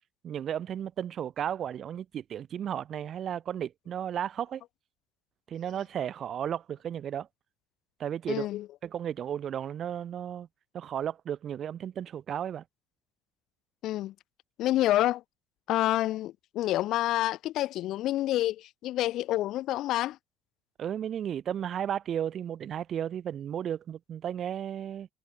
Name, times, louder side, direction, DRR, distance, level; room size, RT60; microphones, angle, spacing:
voice 1, 0.2-4.6 5.5-7.3 8.0-8.5 8.8-10.5 10.7-12.6 20.8-25.1, right 9 dB, 40° right, 4.3 m, -34 dB
voice 2, 8.3-8.7 13.8-14.1 14.6-15.2 15.7-20.2, left 14 dB, 60° left, 2.4 m, -28 dB
cardioid pair, 130°, 0 cm